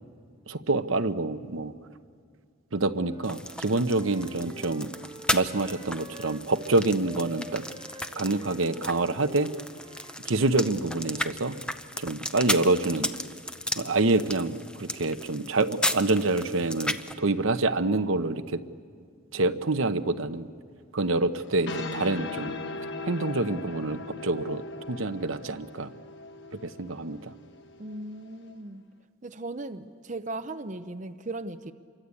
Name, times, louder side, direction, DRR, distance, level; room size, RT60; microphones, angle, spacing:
voice 1, 0.5-1.7 2.7-4.9 5.3-7.6 8.2-9.5 10.2-11.6 12.0-13.1 13.8-18.6 19.3-20.5 20.9-22.5 23.0-25.9 26.6-27.3, right 2 dB, 75° right, 9 dB, 0.9 m, -27 dB
Wind instrument woodwind instrument, 2.9-6.8 7.0-11.3, equal, 20° right, 1.1 m, -48 dB
sound 1, 3.2-17.1, left 1 dB, 5° left, 0.7 m, -35 dB
sound 2, 21.4-28.5, left 3 dB, 55° left, 1.2 m, -39 dB
voice 2, 27.8-28.8 29.2-31.7, right 2 dB, 35° right, 9 dB, 0.7 m, -37 dB
28.0 x 24.0 x 8.5 m, 2.2 s
head